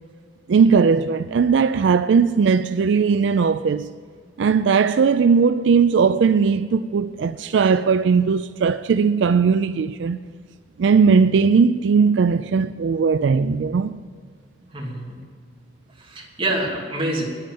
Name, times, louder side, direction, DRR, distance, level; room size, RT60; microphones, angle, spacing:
voice 1, 0.5-3.9 4.4-10.2 10.8-14.0, right 5 dB, 75° right, 0.4 m, -18 dB
voice 2, 14.7-15.2 16.0-17.2, right 1 dB, 30° right, 2.8 m, -26 dB
10.0 x 8.8 x 9.2 m
head